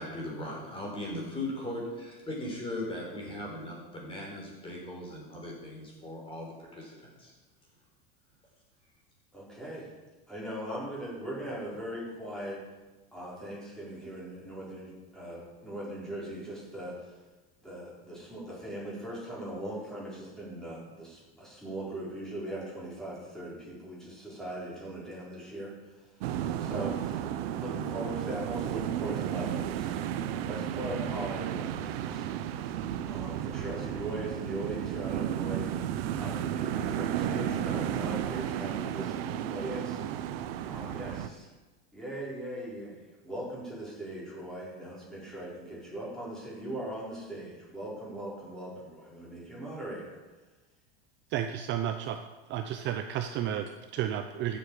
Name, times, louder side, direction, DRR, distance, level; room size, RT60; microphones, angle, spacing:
voice 1, 0.0-7.3, left 1 dB, 15° left, -2 dB, 4.2 m, -38 dB
voice 2, 9.3-9.9 10.3-12.6 13.1-17.1 17.6-26.1 26.6-27.2 27.6-29.9 30.5-32.2 33.1-35.7 36.1-40.0 40.6-41.5 41.9-50.2, right 1 dB, ahead, -7 dB, 4.9 m, -40 dB
sound 1, 26.2-41.3, right 10 dB, 70° right, 0.8 m, -33 dB
voice 3, 51.3-52.2 52.5-54.6, right 10 dB, 35° right, 7 dB, 0.6 m, -32 dB
15.0 x 7.7 x 5.0 m, 1.2 s
supercardioid pair, 140°, 31 cm